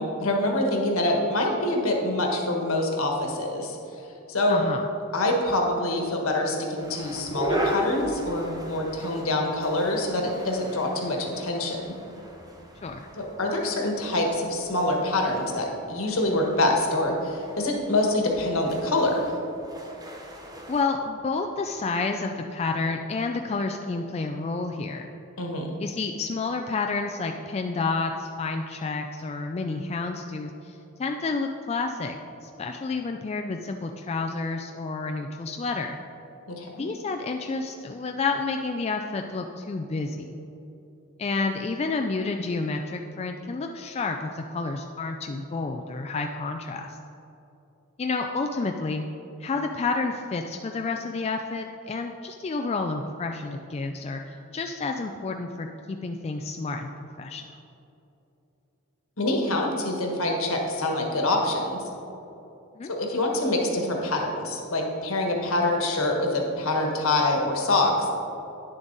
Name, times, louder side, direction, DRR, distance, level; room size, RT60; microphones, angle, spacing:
voice 1, 0.0-3.8 4.3-4.6 5.1-11.8 13.2-19.3 25.4-25.7 36.5-36.8 59.2-61.8 62.9-68.1, left 1 dB, 70° left, 1 dB, 1.4 m, -25 dB
voice 2, 4.5-4.9 12.8-13.1 20.7-25.1 25.8-32.2 32.4-36.0 36.8-40.3 41.2-47.0 48.0-49.1 49.4-56.9 57.2-57.4 62.8-62.9, left 3 dB, 30° left, 4 dB, 0.3 m, -30 dB
sound 1, 6.8-20.8, right 1 dB, 15° right, 0.9 m, -37 dB
10.0 x 7.1 x 4.0 m, 2.9 s
head